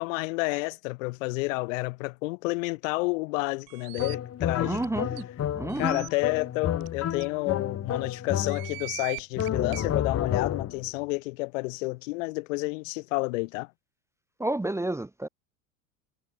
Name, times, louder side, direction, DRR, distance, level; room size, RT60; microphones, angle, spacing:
voice 1, 0.0-4.8 5.8-13.7, left 26 dB, 70° left, 2.7 m, -30 dB
sound 1, 3.7-4.2 4.8-4.9 5.2-5.3 5.7-6.1 6.8-6.9 7.2-7.3 8.3-9.9, right 25 dB, 60° right, 3.8 m, -41 dB
sound 2, 4.0-8.9 9.4-10.9, left 10 dB, 35° left, 3.2 m, -30 dB
voice 2, 4.6-5.2 5.5-6.1 14.4-15.3, right 2 dB, 5° right, 1.2 m, -30 dB
hypercardioid pair, 85°, 40 cm